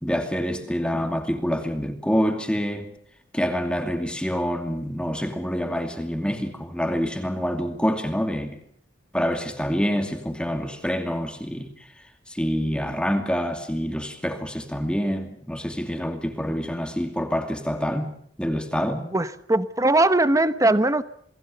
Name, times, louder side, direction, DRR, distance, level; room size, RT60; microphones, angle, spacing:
voice 1, 0.0-2.9 3.3-8.6 9.1-11.7 12.3-18.1 18.4-19.1, equal, 5° left, 2.5 m, -26 dB
voice 2, 19.1-21.0, right 2 dB, 20° right, 1.0 m, -20 dB
29.0 x 20.5 x 6.8 m
head